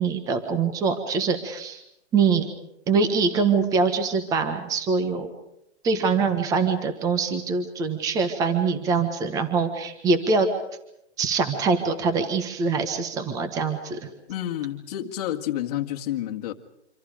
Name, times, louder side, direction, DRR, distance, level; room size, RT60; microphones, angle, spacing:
voice 1, 0.0-1.8 2.1-2.5 2.9-5.3 5.8-10.5 11.2-14.1, right 4 dB, 10° right, 8 dB, 1.3 m, -24 dB
voice 2, 14.3-16.5, left 12 dB, 35° left, 2 dB, 1.8 m, -29 dB
27.0 x 26.5 x 5.0 m, 0.79 s
hypercardioid pair, 165°, 35 cm